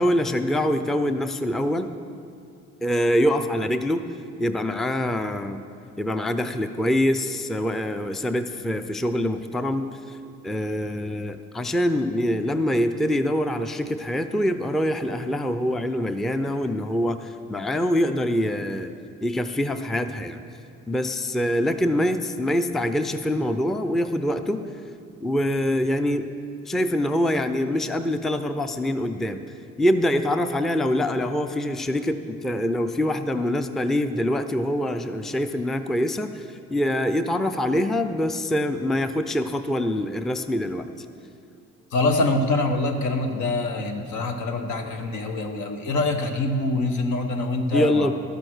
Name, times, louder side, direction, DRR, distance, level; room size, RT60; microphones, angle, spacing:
voice 1, 0.0-1.9 2.8-4.0 4.4-5.7 6.0-10.2 10.4-18.9 19.2-20.4 20.9-24.7 25.2-26.3 26.7-29.4 29.8-41.1 47.7-48.1, left 1 dB, ahead, 9 dB, 0.4 m, -24 dB
voice 2, 41.9-48.1, left 2 dB, 75° left, 5 dB, 1.2 m, -25 dB
13.0 x 6.8 x 6.2 m, 2.5 s
cardioid pair, 90°, 30 cm